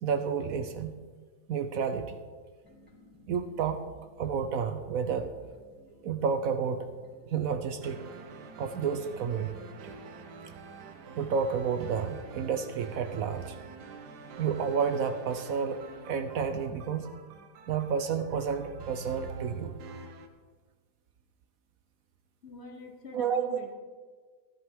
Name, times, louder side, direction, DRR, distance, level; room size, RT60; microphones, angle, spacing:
voice 1, 0.0-1.0 1.5-2.2 3.3-3.9 4.2-5.4 6.0-6.9 7.3-8.0 8.6-9.5 9.8-9.9 11.2-13.6 14.4-17.1 17.7-19.8 23.1-23.6, right 6 dB, 65° right, 8 dB, 1.0 m, -30 dB
sound 1, 2.6-16.4 18.1-19.4, right 2 dB, 5° right, 2.2 m, -57 dB
sound 2, 7.8-20.3, right 4 dB, 85° right, 1.5 m, -47 dB
voice 2, 22.4-23.7, left 3 dB, 45° left, 4 dB, 1.2 m, -45 dB
16.0 x 10.5 x 3.5 m, 1.5 s
omnidirectional pair, 1.7 m